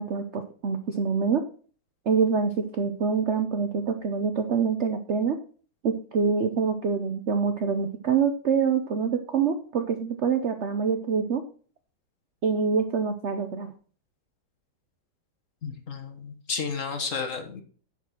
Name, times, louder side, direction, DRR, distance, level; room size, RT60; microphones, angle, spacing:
voice 1, 0.0-1.4 2.1-5.4 5.8-11.4 12.4-13.7, right 6 dB, 60° right, 7 dB, 0.7 m, -25 dB
voice 2, 15.6-17.6, left 5 dB, 45° left, 5 dB, 1.5 m, -32 dB
10.0 x 4.7 x 6.0 m, 0.43 s
omnidirectional pair, 2.0 m